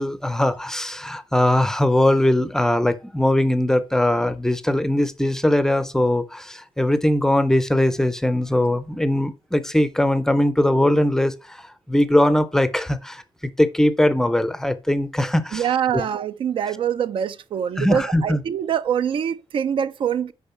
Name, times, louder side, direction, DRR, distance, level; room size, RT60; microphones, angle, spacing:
voice 1, 0.0-11.6 11.9-16.0 17.8-18.4, left 1 dB, 5° left, 0.5 m, -20 dB
voice 2, 15.5-20.3, right 8 dB, 60° right, 0.5 m, -24 dB
6.8 x 5.3 x 5.5 m
wide cardioid pair, 160°, 10 cm